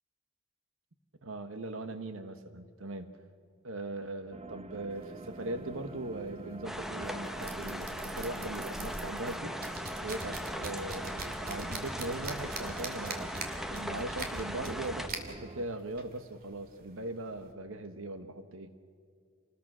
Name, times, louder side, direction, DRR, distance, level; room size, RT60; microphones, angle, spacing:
voice 1, 1.2-3.2 3.6-9.5 10.0-13.4 13.7-18.7, right 2 dB, 75° right, 9 dB, 1.3 m, -40 dB
sound 1, 4.3-15.7, right 3 dB, 30° right, 0.8 m, -47 dB
sound 2, 4.9-17.5, right 3 dB, 45° right, 2.7 m, -45 dB
sound 3, 6.6-15.1, equal, ahead, 1.1 m, -39 dB
29.0 x 20.5 x 6.2 m, 2.3 s
head